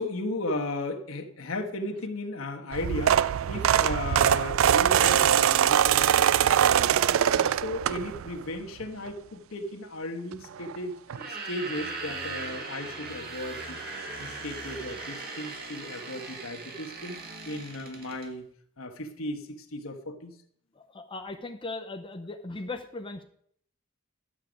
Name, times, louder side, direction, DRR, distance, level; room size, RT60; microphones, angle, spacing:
voice 1, 0.0-7.0 7.6-11.0 11.3-13.8 14.2-18.5 18.8-20.4, left 1 dB, 75° left, 4 dB, 1.3 m, -35 dB
sound 1, 2.7-8.4 8.8-9.1 10.3-10.4 10.6-10.8 11.1-11.2, right 9 dB, 65° right, 0.3 m, -22 dB
sound 2, 11.1-18.3, right 3 dB, 45° right, 1.7 m, -39 dB
voice 2, 20.7-23.2, left 2 dB, 25° left, 4 dB, 0.7 m, -38 dB
11.5 x 7.3 x 5.1 m, 0.64 s
head